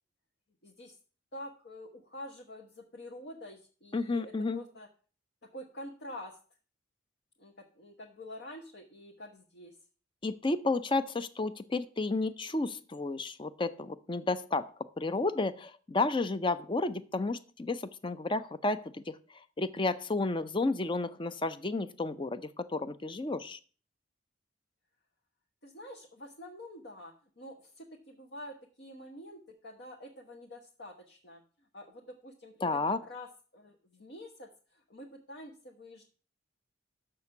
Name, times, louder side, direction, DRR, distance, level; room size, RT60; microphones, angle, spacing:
voice 1, 0.6-0.9 1.3-4.9 5.5-6.4 7.4-9.7 25.6-31.4 31.7-33.3 33.5-36.0, left 1 dB, 60° left, 1 dB, 1.1 m, -47 dB
voice 2, 3.9-4.6 10.2-19.2 19.6-23.6 32.6-33.0, left 3 dB, 25° left, 13 dB, 0.5 m, -32 dB
6.6 x 6.2 x 7.0 m, 0.40 s
head